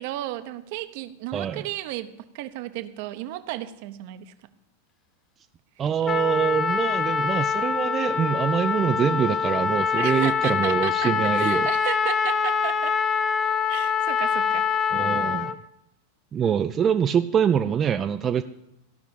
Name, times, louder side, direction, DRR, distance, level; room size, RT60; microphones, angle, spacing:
voice 1, 0.0-4.3 10.0-12.9 13.7-14.7, right 15 dB, 50° right, 11 dB, 0.9 m, -34 dB
voice 2, 1.3-1.7 5.8-11.7 14.9-15.6 16.3-18.4, right 8 dB, 25° right, 7 dB, 0.5 m, -24 dB
Trumpet, 6.1-15.6, left 6 dB, 25° left, 0.6 m, -24 dB
15.0 x 6.1 x 8.7 m, 0.85 s
figure-of-eight pair, 90°, 0 cm